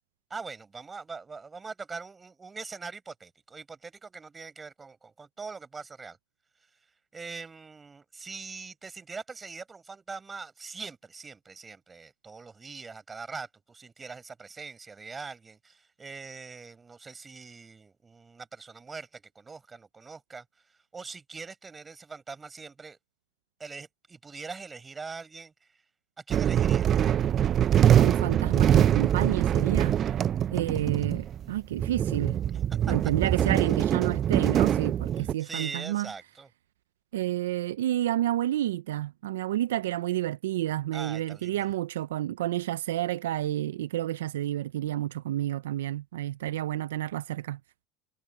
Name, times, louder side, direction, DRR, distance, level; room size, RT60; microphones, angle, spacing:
voice 1, 0.3-6.2 7.1-20.4 20.9-23.0 23.6-25.5 26.2-26.9 32.9-33.0 35.2-36.5 40.9-41.7, right 4 dB, 20° right, 6.3 m, -42 dB
sound 1, 26.3-35.3, right 10 dB, 40° right, 0.5 m, -24 dB
voice 2, 27.9-30.0 30.5-32.4 32.9-36.1 37.1-47.6, right 13 dB, 85° right, 0.6 m, -30 dB
hypercardioid pair, 90°, 0 cm